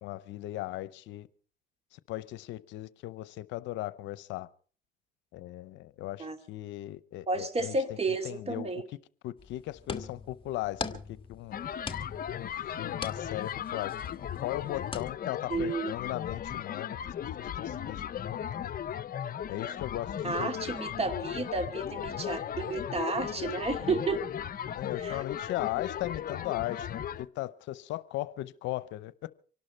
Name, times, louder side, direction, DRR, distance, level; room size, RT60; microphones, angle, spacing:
voice 1, 0.0-1.3 1.9-4.5 5.3-7.8 8.2-8.8 9.2-10.8 11.3-11.6 12.3-14.0 14.4-17.0 17.2-18.7 19.5-20.8 24.7-29.3, left 16 dB, 85° left, 0.7 m, -37 dB
voice 2, 7.3-8.8 15.5-15.9 20.2-24.2 25.0-25.2, right 3 dB, 35° right, 2.7 m, -32 dB
sound 1, 9.4-15.1, left 4 dB, 30° left, 1.6 m, -42 dB
sound 2, 11.5-27.2, left 9 dB, 50° left, 0.8 m, -36 dB
25.0 x 12.0 x 4.5 m
cardioid pair, 85°, 19 cm